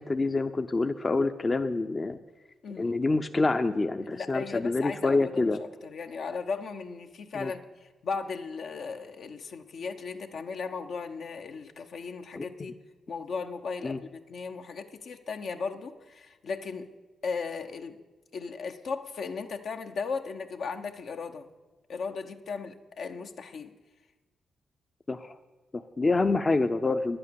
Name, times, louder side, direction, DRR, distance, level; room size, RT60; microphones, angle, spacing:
voice 1, 0.0-2.2 2.8-5.6 7.3-7.5 12.4-12.5 13.8-14.0 25.1-25.4 25.7-27.2, left 3 dB, 35° left, 8 dB, 0.6 m, -27 dB
voice 2, 2.6-3.0 4.0-5.3 5.6-12.7 13.1-16.9 17.2-18.0 18.3-21.5 21.9-23.8, left 5 dB, 70° left, 5 dB, 0.8 m, -36 dB
10.5 x 8.9 x 6.9 m, 1.2 s
supercardioid pair, 60°, 0 cm